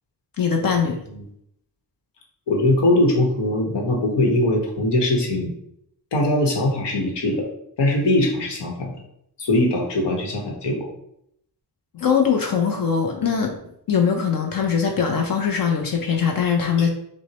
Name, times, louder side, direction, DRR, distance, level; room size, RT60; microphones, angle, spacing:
voice 1, 0.4-1.0 11.9-13.6 13.9-16.9, left 6 dB, 55° left, 2 dB, 0.6 m, -21 dB
voice 2, 2.5-5.5 6.1-7.4 7.8-8.9 9.4-10.9 16.8-16.9, left 1 dB, 85° left, 0 dB, 1.1 m, -21 dB
6.2 x 2.1 x 2.9 m, 0.74 s
wide cardioid pair, 110°, 41 cm